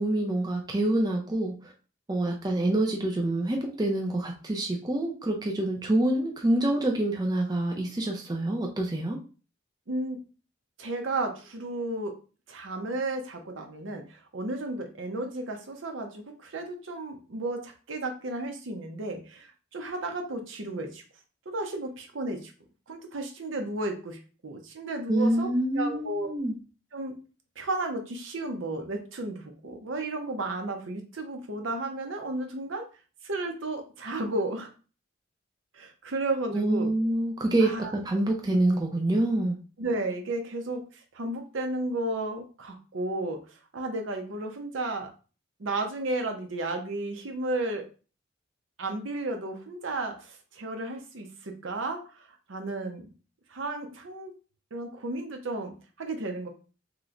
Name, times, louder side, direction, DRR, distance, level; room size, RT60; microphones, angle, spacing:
voice 1, 0.0-1.7 2.1-9.2 25.1-26.6 36.5-39.6, right 1 dB, 20° right, 1 dB, 0.4 m, -26 dB
voice 2, 9.9-10.2 10.8-12.2 12.5-21.0 21.5-22.5 22.9-25.5 25.7-26.3 26.9-27.2 27.6-32.9 33.2-34.7 35.7-36.9 37.6-37.9 39.8-43.4 43.7-45.1 45.6-47.9 48.8-53.1 53.5-54.3 54.7-56.5, right 2 dB, 80° right, 4 dB, 0.7 m, -33 dB
3.0 x 2.0 x 3.7 m, 0.36 s
head